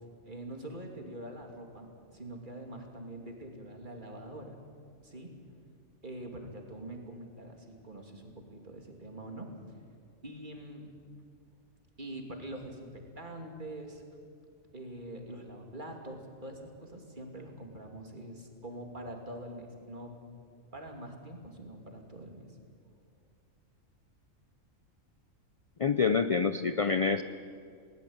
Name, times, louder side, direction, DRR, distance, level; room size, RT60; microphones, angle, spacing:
voice 1, 0.2-4.6 5.0-5.3 6.0-9.5 10.2-10.9 12.0-14.0 14.7-20.1 20.7-22.5, right 1 dB, 35° right, 3 dB, 2.8 m, -44 dB
voice 2, 25.8-27.2, left 5 dB, 60° left, 11 dB, 0.3 m, -27 dB
19.5 x 18.5 x 8.7 m, 2.3 s
omnidirectional pair, 1.4 m